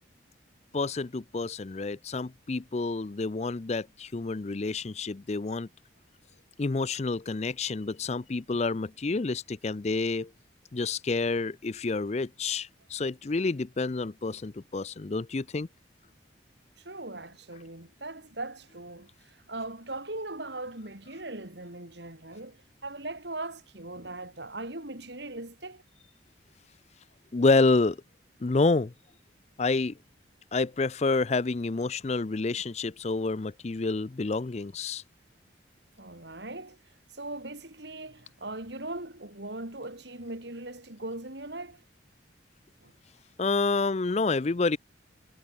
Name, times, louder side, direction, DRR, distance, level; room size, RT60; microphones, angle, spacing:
voice 1, 0.7-5.7 6.6-10.3 10.7-15.7 27.3-28.0 28.4-28.9 29.6-29.9 30.5-35.0 43.4-44.8, left 3 dB, 35° left, 0.5 m, -28 dB
voice 2, 16.8-25.8 36.0-41.8 42.8-42.9, right 2 dB, 65° right, 4.0 m, -40 dB
head